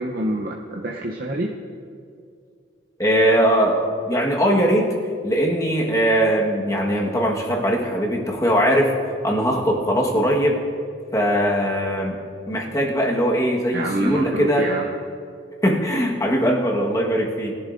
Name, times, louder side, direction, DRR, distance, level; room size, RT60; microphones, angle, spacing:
voice 1, 0.0-1.5 10.1-10.3 13.7-14.9, right 1 dB, 50° right, 0 dB, 0.7 m, -26 dB
voice 2, 3.0-4.9 5.2-8.9 9.2-10.6 11.1-12.2 12.5-14.7 15.6-17.6, equal, 20° left, -1 dB, 1.3 m, -20 dB
21.0 x 11.0 x 2.6 m, 2.3 s
head